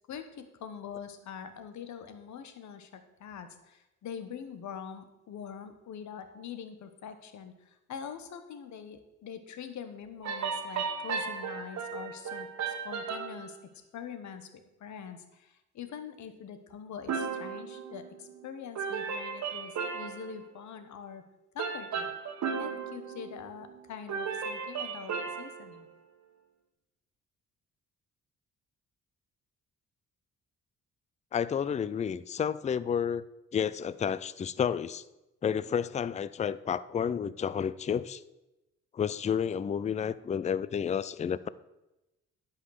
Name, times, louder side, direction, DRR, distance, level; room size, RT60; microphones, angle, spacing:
voice 1, 0.1-13.6 13.9-14.5 14.8-21.2 21.5-22.1 22.6-25.9, left 7 dB, 70° left, 9 dB, 1.3 m, -44 dB
sound 1, 10.2-13.5 17.1-18.5 18.8-20.4 21.6-23.8 24.1-25.7, right 6 dB, 65° right, 1.4 m, -35 dB
voice 2, 31.3-33.2 33.5-35.0 35.4-38.2 38.9-41.5, left 8 dB, 25° left, 17 dB, 0.4 m, -31 dB
11.0 x 5.7 x 6.5 m, 0.96 s
cardioid pair, 90°, 30 cm